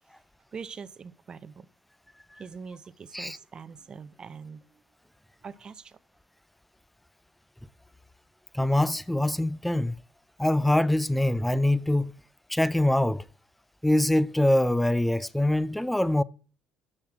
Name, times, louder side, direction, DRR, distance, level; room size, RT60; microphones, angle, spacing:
voice 1, 0.5-1.7 2.4-4.8 5.4-6.0, right 5 dB, 35° right, 0.6 m, -43 dB
voice 2, 8.5-10.0 10.4-12.1 12.5-13.3 13.8-16.2, left 1 dB, 5° left, 0.4 m, -24 dB
7.2 x 6.7 x 5.9 m
cardioid pair, 100°, 2 cm